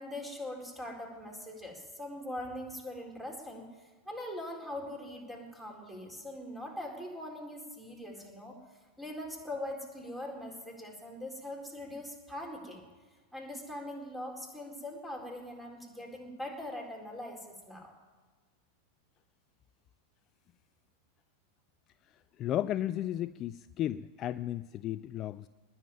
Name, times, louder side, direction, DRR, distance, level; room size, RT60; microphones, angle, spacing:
voice 1, 0.0-8.6 9.0-12.9 13.3-17.9, left 1 dB, 5° right, 1 dB, 4.1 m, -42 dB
voice 2, 22.4-25.5, left 12 dB, 35° left, 15 dB, 0.4 m, -34 dB
19.5 x 7.3 x 9.1 m, 1.4 s
figure-of-eight pair, 90°, 0 cm